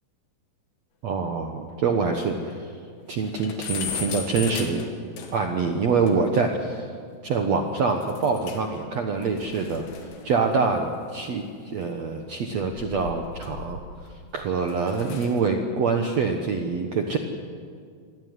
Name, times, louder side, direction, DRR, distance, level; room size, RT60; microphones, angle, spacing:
voice 1, 1.0-2.6 3.1-4.8 5.3-6.8 7.2-9.8 10.2-11.4 11.7-13.8 14.3-17.2, right 4 dB, 70° right, 4 dB, 1.6 m, -25 dB
sound 1, 1.3-1.4 1.7-1.8 2.1-2.2 2.6-2.7 3.0-5.6 6.1-6.2 8.0-8.8 9.0-11.7 12.5-14.1 14.6-15.4, left 6 dB, 65° left, 3.9 m, -38 dB
26.0 x 16.5 x 9.7 m, 2.1 s
omnidirectional pair, 4.9 m